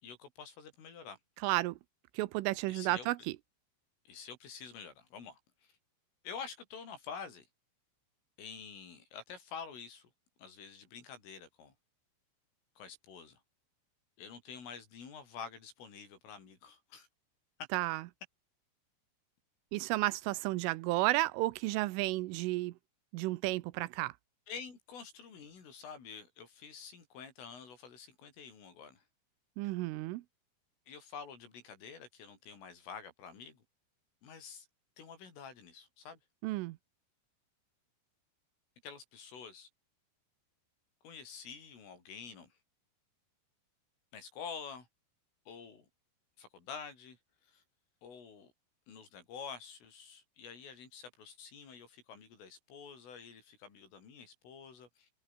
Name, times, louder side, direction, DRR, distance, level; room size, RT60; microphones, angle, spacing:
voice 1, 0.0-1.2 2.7-3.1 4.1-5.7 6.2-7.5 8.4-10.1 10.4-11.7 12.8-13.4 14.2-17.1 24.5-29.0 30.9-33.6 34.2-34.7 35.0-36.2 38.8-39.7 41.0-42.6 44.1-44.9 45.5-45.9 46.4-47.2 47.4-47.6 48.0-48.5 48.9-55.1, left 6 dB, 75° left, 8.5 m, -48 dB
voice 2, 1.4-1.8 2.1-3.2 17.7-18.0 19.7-22.7 23.1-24.1 29.6-30.2 36.4-36.8, right 19 dB, 85° right, 3.3 m, -32 dB
omnidirectional pair, 5.8 m